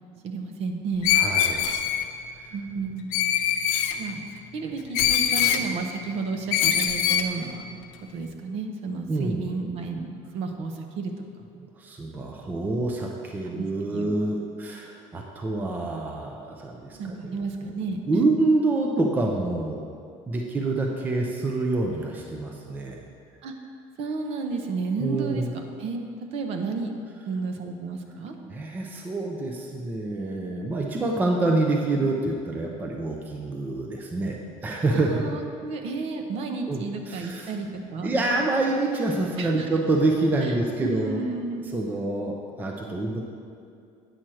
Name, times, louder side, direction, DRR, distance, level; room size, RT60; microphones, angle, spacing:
voice 1, 0.2-1.1 2.5-3.3 3.9-4.2 4.5-7.6 8.1-11.1 13.4-14.1 16.9-18.2 20.5-20.6 23.4-23.5 24.0-26.0 26.3-26.9 27.3-28.3 34.9-38.2 39.4-39.7 40.4-41.7, right 4 dB, 50° right, 4 dB, 0.8 m, -32 dB
Screech, 1.0-2.1 3.1-4.0 4.9-5.6 6.5-7.3, left 9 dB, 85° left, 0.6 m, -22 dB
voice 2, 1.1-1.6 2.3-2.5 9.1-9.4 11.6-17.7 18.1-19.8 20.3-23.0 25.0-25.5 28.5-35.3 36.7-37.5 38.0-41.2 41.6-43.2, right 2 dB, 15° right, 1 dB, 0.5 m, -27 dB
9.0 x 4.4 x 6.2 m, 2.4 s
cardioid pair, 175°, 14 cm